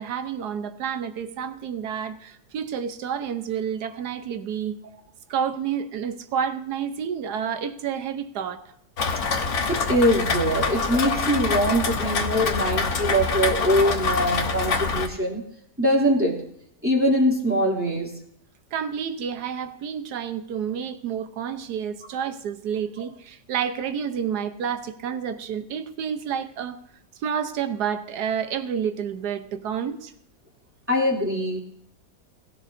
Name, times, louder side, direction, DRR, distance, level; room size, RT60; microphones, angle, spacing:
voice 1, 0.0-4.8 5.3-8.7 18.7-26.8 27.2-30.1, right 8 dB, 65° right, 1.4 m, -29 dB
Rain, 9.0-15.1, left 4 dB, 50° left, 1.2 m, -25 dB
voice 2, 9.7-15.4 15.8-16.4 16.8-18.1 30.9-31.6, equal, 5° right, 2.8 m, -22 dB
20.5 x 14.0 x 2.7 m
omnidirectional pair, 1.9 m